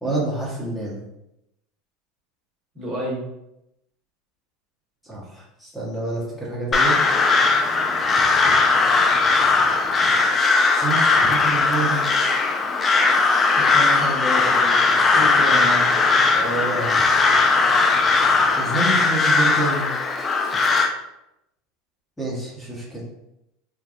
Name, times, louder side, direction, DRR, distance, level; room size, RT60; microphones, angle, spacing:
voice 1, 0.0-1.0 5.0-7.0 10.8-12.1 16.3-17.0 18.6-19.9 22.2-23.0, right 2 dB, 10° left, -5 dB, 1.0 m, -27 dB
voice 2, 2.7-3.2 13.0-13.2 13.6-16.0 20.2-20.5, equal, 40° right, -5 dB, 1.3 m, -30 dB
Crow, 6.7-20.9, left 4 dB, 25° left, 0.4 m, -18 dB
3.4 x 2.2 x 2.5 m, 0.86 s
hypercardioid pair, 95°, 0 cm